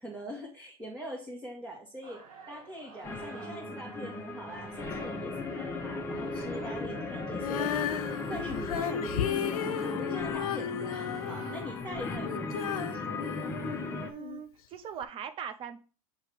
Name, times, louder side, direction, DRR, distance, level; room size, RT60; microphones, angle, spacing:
voice 1, 0.0-7.8 8.3-13.6, equal, 10° right, -4 dB, 1.8 m, -43 dB
sound 1, 2.0-12.5, right 4 dB, 75° right, 3.0 m, -51 dB
sound 2, 3.0-14.1, left 3 dB, 15° left, 0.9 m, -36 dB
Female singing, 7.3-14.4 15.0-15.1, left 10 dB, 75° left, 0.7 m, -35 dB
voice 2, 14.1-15.8, right 8 dB, 30° right, 10 dB, 0.8 m, -40 dB
7.6 x 3.1 x 4.8 m, 0.35 s
hypercardioid pair, 130°, 19 cm